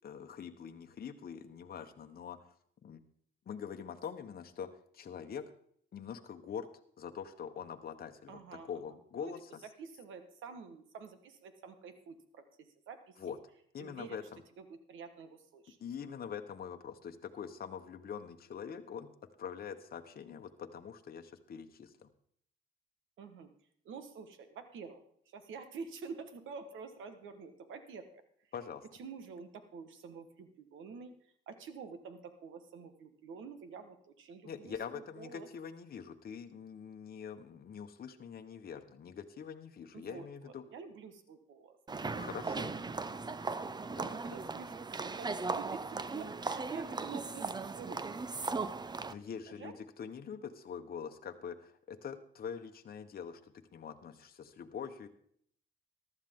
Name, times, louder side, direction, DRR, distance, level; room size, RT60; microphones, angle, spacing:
voice 1, 0.0-2.5 2.8-3.0 3.5-5.5 5.9-6.7 7.0-8.4 8.7-9.6 13.2-13.4 13.7-14.4 15.8-19.1 19.4-22.1 28.5-28.8 34.4-40.6 42.2-42.7 43.8-44.3 49.1-55.1, left 7 dB, 50° left, 6 dB, 1.1 m, -44 dB
voice 2, 8.3-8.7 9.2-9.3 9.6-13.4 13.8-14.2 14.6-15.8 23.2-23.5 23.8-28.2 29.0-35.5 39.9-41.8 42.1-42.2 44.0-48.7 49.0-49.7, right 5 dB, 80° right, 9 dB, 1.5 m, -49 dB
sound 1, 41.9-49.1, right 4 dB, 20° right, 0.6 m, -38 dB
14.5 x 12.0 x 3.7 m, 0.62 s
cardioid pair, 90°, 20 cm